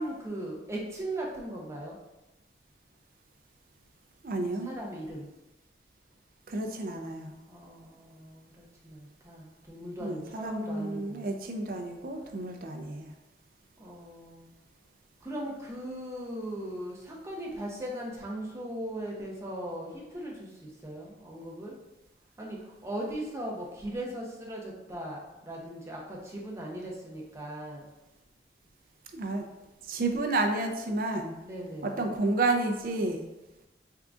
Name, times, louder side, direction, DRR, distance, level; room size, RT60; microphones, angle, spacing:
voice 1, 0.0-2.0 4.6-5.3 7.5-11.3 13.8-14.5 15.2-21.7 22.4-27.9 31.4-32.0, right 1 dB, 15° right, -3 dB, 0.6 m, -38 dB
voice 2, 4.2-4.7 6.5-7.4 10.0-13.1 29.1-29.5 29.8-31.4 31.8-33.2, right 2 dB, 55° right, 4 dB, 0.4 m, -31 dB
3.6 x 3.6 x 2.4 m, 1.0 s
head